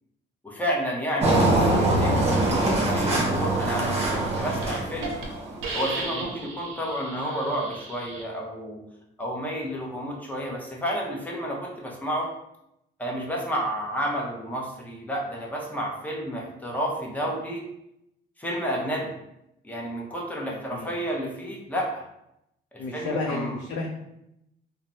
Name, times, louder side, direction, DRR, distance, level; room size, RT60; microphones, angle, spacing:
voice 1, 0.4-5.2 5.7-8.8 9.2-12.3 13.0-17.6 18.4-19.1 19.6-22.0 22.7-23.6, equal, 10° left, -2 dB, 0.8 m, -31 dB
Engine, 1.2-5.7, right 1 dB, 30° right, 0.8 m, -23 dB
Hiss, 4.6-4.7 5.0-5.2 5.6-8.2, right 3 dB, 85° right, 0.6 m, -35 dB
voice 2, 20.5-20.9 22.8-23.9, left 3 dB, 75° left, -2 dB, 0.5 m, -32 dB
3.2 x 2.1 x 2.6 m, 0.83 s
cardioid pair, 90°, 20 cm